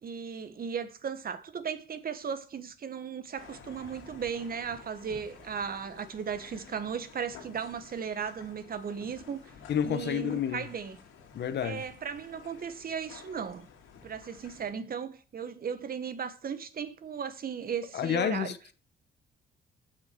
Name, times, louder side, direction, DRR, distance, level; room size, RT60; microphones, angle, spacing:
voice 1, 0.0-9.4 9.8-11.0 11.6-13.7 14.0-18.5, right 7 dB, 50° right, 1.4 m, -36 dB
sound 1, 3.4-14.7, left 6 dB, 85° left, 2.7 m, -52 dB
voice 2, 9.7-10.7 11.3-11.9 17.9-18.7, left 9 dB, 60° left, 1.1 m, -30 dB
7.6 x 6.2 x 7.7 m
cardioid pair, 90°, 20 cm